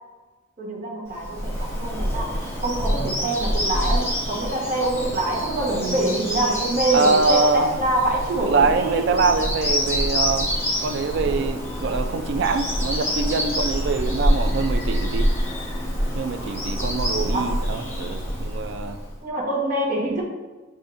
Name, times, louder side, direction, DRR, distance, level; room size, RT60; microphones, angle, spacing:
voice 1, 0.6-9.1 17.2-17.5 19.2-20.3, right 2 dB, 45° right, -4 dB, 1.0 m, -25 dB
Bird vocalization bird call bird song, 1.1-19.1, equal, 15° left, 0.9 m, -26 dB
voice 2, 6.9-7.8 8.4-10.5 10.8-15.3 16.1-19.0, right 4 dB, 60° right, 9 dB, 0.3 m, -24 dB
6.7 x 2.6 x 2.5 m, 1.3 s
head